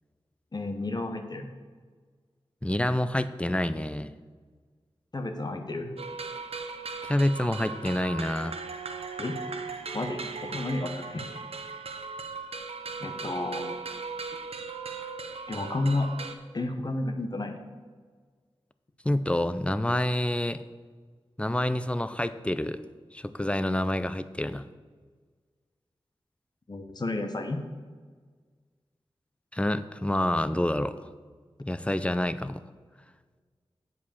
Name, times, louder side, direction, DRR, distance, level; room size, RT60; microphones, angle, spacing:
voice 1, 0.5-1.5 5.1-5.9 9.2-9.4 9.9-11.3 13.0-13.8 15.5-16.1 16.5-17.6 26.7-27.6, left 2 dB, 45° left, 6 dB, 1.0 m, -31 dB
voice 2, 2.6-4.1 7.0-8.6 19.0-20.6 21.4-22.8 23.1-24.6 29.5-31.0 31.6-32.6, left 1 dB, 10° left, 13 dB, 0.4 m, -27 dB
sound 1, 6.0-16.3, right 4 dB, 80° right, 0.7 m, -38 dB
8.3 x 4.9 x 7.0 m, 1.5 s
wide cardioid pair, 50°, 10 cm